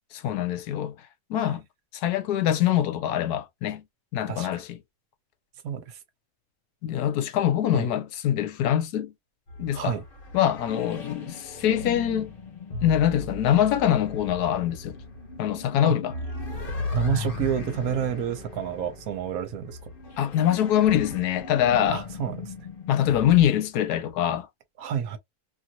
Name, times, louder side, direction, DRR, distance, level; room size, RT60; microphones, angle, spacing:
voice 1, 0.1-0.9 1.3-1.6 1.9-3.8 4.1-4.8 6.8-9.1 9.6-10.0 10.3-12.3 12.8-15.0 15.4-16.1 20.2-22.0 22.9-24.5, left 11 dB, 80° left, 1.1 m, -24 dB
voice 2, 4.3-4.6 5.6-6.0 7.7-7.9 9.7-10.0 15.8-16.0 16.9-19.8 21.9-22.5 24.8-25.2, right 8 dB, 70° right, 1.0 m, -29 dB
sound 1, 9.5-23.5, left 3 dB, 45° left, 0.9 m, -37 dB
2.7 x 2.5 x 2.7 m
omnidirectional pair, 1.7 m